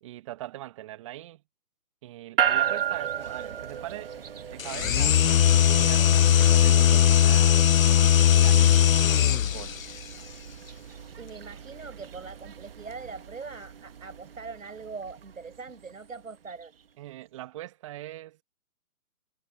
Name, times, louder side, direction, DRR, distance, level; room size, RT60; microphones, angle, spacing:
voice 1, 0.0-1.4 2.0-4.2 4.5-5.2 5.6-7.6 8.0-8.7 9.5-9.8 17.0-18.4, right 15 dB, 20° right, 1.6 m, -41 dB
sound 1, 2.4-16.6, right 9 dB, 40° right, 1.4 m, -35 dB
sound 2, 4.6-9.8, left 9 dB, 70° left, 0.5 m, -19 dB
voice 2, 11.2-16.7, right 4 dB, 65° right, 6.2 m, -42 dB
figure-of-eight pair, 145°, 43 cm